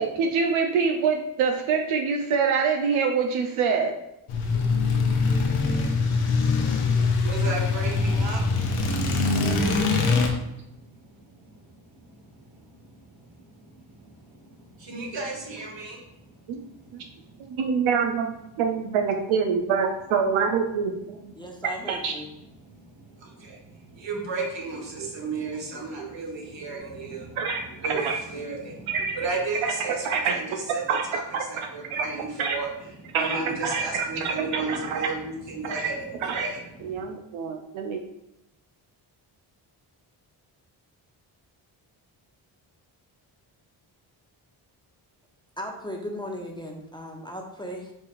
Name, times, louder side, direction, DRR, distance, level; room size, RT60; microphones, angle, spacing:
voice 1, 0.0-3.9 9.9-10.0 16.5-16.6 16.9-17.0 17.4-20.9 21.9-22.1 27.4-27.6 28.0-28.2 28.9-29.2 29.6-29.7 30.0-30.3 30.9-31.0 31.3-31.4 31.9-32.1 32.4-32.6 33.1-35.0 35.7-35.8 36.3-36.5 36.8-38.0, right 6 dB, 80° right, 3 dB, 0.5 m, -25 dB
sound 1, 4.3-10.3, left 4 dB, 80° left, 0.7 m, -23 dB
voice 2, 5.6-17.6 22.6-37.0, right 3 dB, 60° right, -1 dB, 1.3 m, -36 dB
voice 3, 21.4-22.3 45.6-47.9, equal, 10° left, 0 dB, 0.6 m, -36 dB
4.4 x 2.9 x 2.4 m, 0.84 s
supercardioid pair, 50°, 49 cm